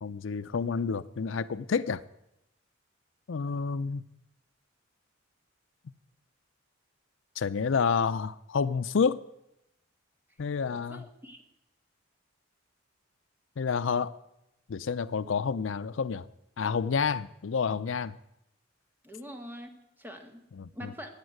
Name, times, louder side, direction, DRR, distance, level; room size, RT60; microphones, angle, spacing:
voice 1, 0.0-2.0 3.3-4.0 7.4-9.2 10.4-11.1 13.6-14.1 14.7-16.3 16.6-18.2 20.5-20.9, left 5 dB, 70° left, 15 dB, 0.5 m, -29 dB
voice 2, 10.7-11.4 19.0-20.4 20.7-21.1, equal, 10° right, 4 dB, 1.7 m, -44 dB
14.0 x 8.8 x 9.4 m, 0.86 s
head